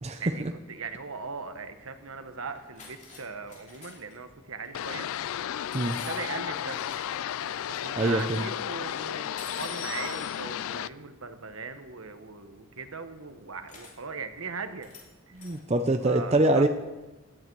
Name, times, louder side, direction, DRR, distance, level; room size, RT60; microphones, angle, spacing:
voice 1, 0.0-0.5 5.7-6.0 8.0-8.4 15.3-16.7, right 2 dB, 30° right, 7 dB, 0.6 m, -24 dB
voice 2, 0.7-5.1 6.0-6.8 7.8-14.9 15.3-15.4 16.0-16.6, right 4 dB, 70° right, 9 dB, 1.1 m, -39 dB
sound 1, 2.5-3.2 3.5-4.1 4.6-4.9 5.7-7.2 7.5-8.4 9.4-10.3 13.7-13.9 14.8-15.1 15.3-15.6, left 3 dB, 35° left, 2.9 m, -46 dB
sound 2, 4.7-10.9, left 10 dB, 70° left, 0.3 m, -33 dB
17.0 x 11.0 x 4.7 m, 1.1 s
head